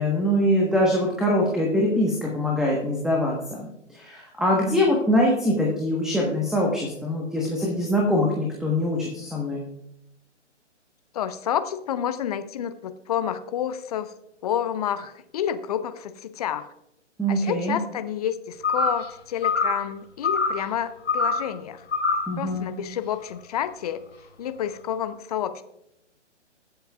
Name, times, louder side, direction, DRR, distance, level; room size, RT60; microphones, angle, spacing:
voice 1, 0.0-9.6 17.2-17.8 22.3-22.8, left 1 dB, ahead, -2 dB, 1.2 m, -23 dB
voice 2, 11.1-14.1 14.4-16.7 17.3-21.8 22.4-24.0 24.4-25.6, left 9 dB, 30° left, 11 dB, 0.7 m, -29 dB
sound 1, 18.6-19.1 19.4-19.9 20.2-20.6 21.1-21.5 21.9-22.3, left 4 dB, 75° left, 3.9 m, -24 dB
22.5 x 7.9 x 2.4 m, 0.82 s
figure-of-eight pair, 130°, 36 cm